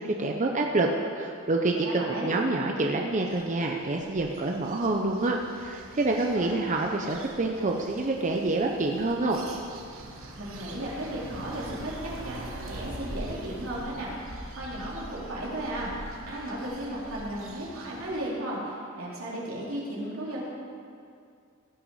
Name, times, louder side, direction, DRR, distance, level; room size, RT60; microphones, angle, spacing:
voice 1, 0.0-9.4, right 2 dB, 35° right, 1 dB, 0.7 m, -27 dB
voice 2, 1.8-2.3 6.3-6.5 10.3-20.5, right 1 dB, 85° right, -6 dB, 3.4 m, -35 dB
sound 1, 3.0-18.2, right 1 dB, 70° right, 1.2 m, -43 dB
16.0 x 6.0 x 5.5 m, 2.4 s
head